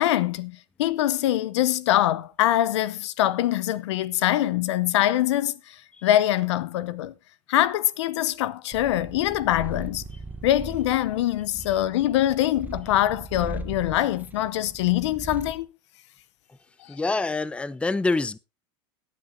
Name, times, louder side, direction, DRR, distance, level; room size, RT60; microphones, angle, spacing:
voice 1, 0.0-5.8 6.0-7.1 7.5-10.0 10.4-15.7, left 13 dB, 80° left, 0.7 m, -23 dB
Purr, 8.7-15.6, right 2 dB, 10° right, 1.1 m, -39 dB
voice 2, 16.9-18.4, left 3 dB, 10° left, 0.5 m, -26 dB
17.5 x 9.1 x 2.7 m
hypercardioid pair, 100°, 15 cm